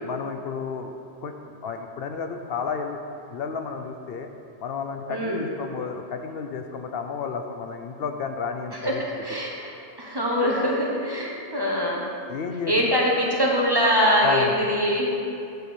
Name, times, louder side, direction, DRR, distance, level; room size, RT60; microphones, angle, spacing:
voice 1, 0.0-0.9 1.2-1.3 1.6-3.0 3.3-4.3 4.6-9.0 12.3-12.7 14.2-14.5, left 5 dB, 70° left, 6 dB, 0.8 m, -31 dB
voice 2, 5.1-5.4 8.8-9.6 10.0-12.1 12.7-15.1, equal, 25° right, -3 dB, 1.1 m, -23 dB
7.8 x 4.5 x 6.9 m, 2.5 s
omnidirectional pair, 1.0 m